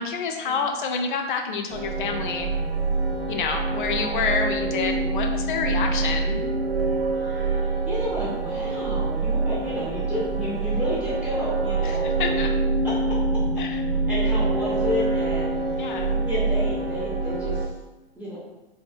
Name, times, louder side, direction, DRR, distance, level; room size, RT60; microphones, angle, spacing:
voice 1, 0.0-2.5 3.3-6.4 12.0-12.5 13.6-13.8 15.8-16.2, left 5 dB, 55° left, 4 dB, 0.4 m, -28 dB
sound 1, 1.7-17.7, right 3 dB, 75° right, 0.5 m, -25 dB
voice 2, 7.1-12.4 12.8-13.6 14.1-17.8 18.1-18.4, left 1 dB, 5° right, -7 dB, 0.4 m, -32 dB
2.6 x 2.3 x 2.3 m, 1.0 s
figure-of-eight pair, 95°, 30 cm